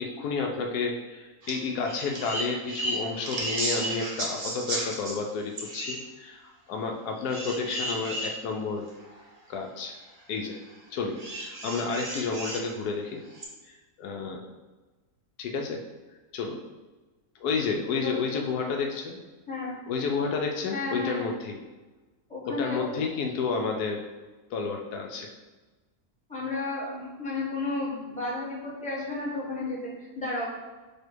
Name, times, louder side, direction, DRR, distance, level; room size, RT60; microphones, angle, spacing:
voice 1, 0.0-8.9 9.5-10.0 10.3-10.6 10.9-13.2 13.7-14.4 15.4-15.8 16.3-16.6 17.4-19.2 19.9-21.6 22.5-24.1 24.5-25.3, left 4 dB, 80° left, 2 dB, 1.1 m, -31 dB
sound 1, 1.4-1.6 1.8-5.1 5.6-6.0 7.3-8.3 9.0-9.1 11.2-12.7 13.4-13.5, right 1 dB, 40° right, 0.6 m, -33 dB
voice 2, 18.0-18.6 19.5-19.7 20.7-21.2 22.3-23.0 26.3-30.5, left 3 dB, 5° left, -8 dB, 1.3 m, -33 dB
4.3 x 2.6 x 4.5 m, 1.2 s
omnidirectional pair, 1.7 m